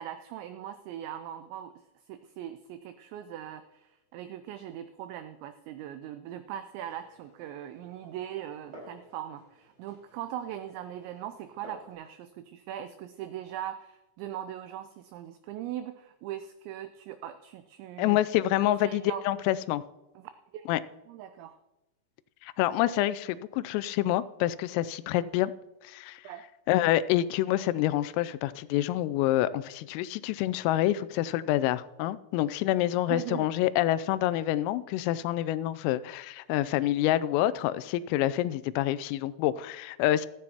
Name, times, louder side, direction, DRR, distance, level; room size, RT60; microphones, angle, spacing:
voice 1, 0.0-1.8 2.1-18.2 18.6-19.3 20.2-20.7 21.1-21.6 26.2-26.4 33.1-33.5, right 11 dB, 90° right, 2.5 m, -40 dB
Glass, 6.8-11.9, right 1 dB, 35° right, 5.8 m, -53 dB
voice 2, 18.0-19.8 20.7-20.8 22.4-25.5 25.8-26.2 26.7-40.3, left 14 dB, 90° left, 3.2 m, -27 dB
16.5 x 14.0 x 2.9 m
omnidirectional pair, 5.8 m